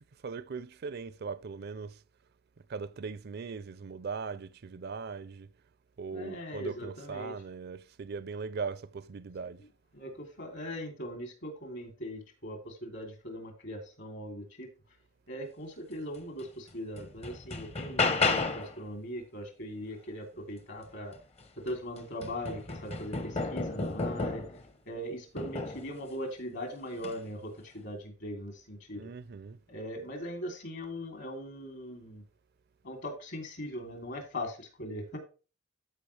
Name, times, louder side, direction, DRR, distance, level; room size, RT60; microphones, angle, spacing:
voice 1, 0.2-2.0 2.7-5.5 6.0-9.6 28.9-29.6, right 5 dB, 55° right, 0.5 m, -39 dB
voice 2, 6.1-7.4 9.9-14.7 15.3-21.2 21.6-24.5 24.9-29.1 29.7-32.2 32.8-35.2, equal, 65° left, 2.9 m, -40 dB
sound 1, 16.4-16.5 17.0-18.8 21.2-21.3 21.7-24.7 25.4-25.9 26.9-27.2, left 3 dB, 35° left, 0.8 m, -32 dB
13.0 x 5.2 x 3.3 m
head